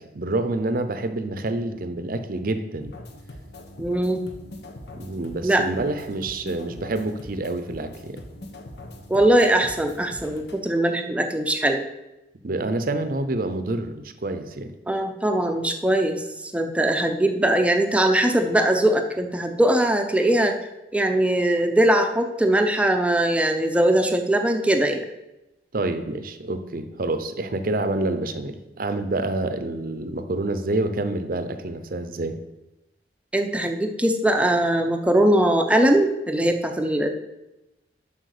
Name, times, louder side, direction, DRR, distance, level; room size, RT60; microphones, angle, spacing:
voice 1, 0.0-2.9 5.0-8.2 12.4-14.8 25.7-32.4, right 2 dB, 50° right, 10 dB, 0.7 m, -27 dB
sound 1, 2.8-10.6, left 1 dB, 65° left, 1.2 m, -42 dB
voice 2, 3.8-4.2 5.4-5.6 9.1-11.9 14.9-20.6 20.9-25.0 33.3-37.1, right 1 dB, 5° right, 5 dB, 0.7 m, -21 dB
7.9 x 5.9 x 6.6 m, 0.97 s
head